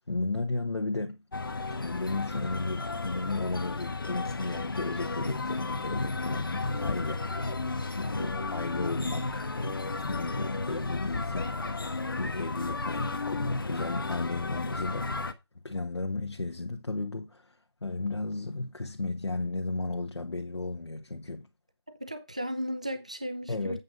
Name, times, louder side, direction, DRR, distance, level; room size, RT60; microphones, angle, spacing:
voice 1, 0.1-1.2 1.8-7.2 8.0-9.5 10.0-11.6 12.2-15.2 15.6-17.6 17.8-21.5 23.5-23.8, left 3 dB, 85° left, 1.4 m, -34 dB
sound 1, 1.3-15.3, left 3 dB, 55° left, 1.2 m, -33 dB
voice 2, 21.9-23.8, equal, 15° right, 0.5 m, -35 dB
8.5 x 6.4 x 5.3 m
figure-of-eight pair, 175°, 14 cm